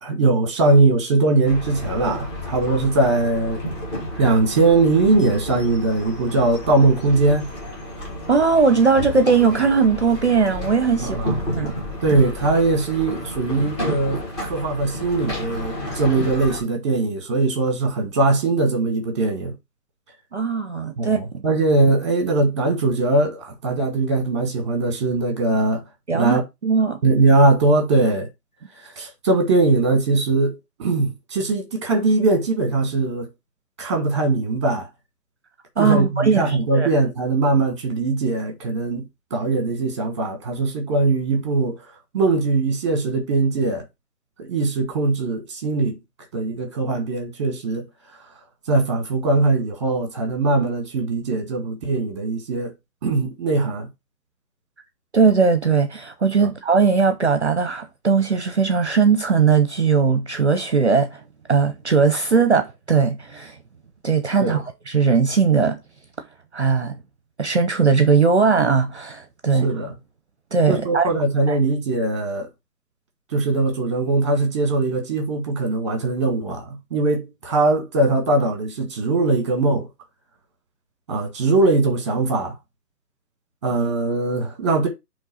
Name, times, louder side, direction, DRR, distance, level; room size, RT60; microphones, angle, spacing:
voice 1, 0.0-3.8 4.1-7.5 11.0-11.4 12.0-19.5 21.0-25.8 26.1-26.4 27.0-28.3 28.8-33.3 33.8-34.9 35.8-39.0 39.3-41.7 42.1-43.8 44.4-46.0 46.3-47.8 48.7-52.7 53.0-53.9 56.4-56.5 64.4-64.6 69.6-69.9 70.7-72.5 73.3-79.9 81.1-82.5 83.6-84.9, right 3 dB, 20° right, 1.4 m, -20 dB
sound 1, 1.4-16.6, left 1 dB, 15° left, 1.8 m, -31 dB
voice 2, 8.3-11.2 11.6-11.7 12.1-12.2 20.3-21.4 26.1-27.0 35.8-36.9 55.1-61.2 61.5-63.6 64.0-65.8 66.5-67.0 67.4-69.7 70.5-71.1 71.5-71.6, right 5 dB, 45° right, 0.8 m, -19 dB
8.2 x 3.4 x 4.1 m
figure-of-eight pair, 150°, 49 cm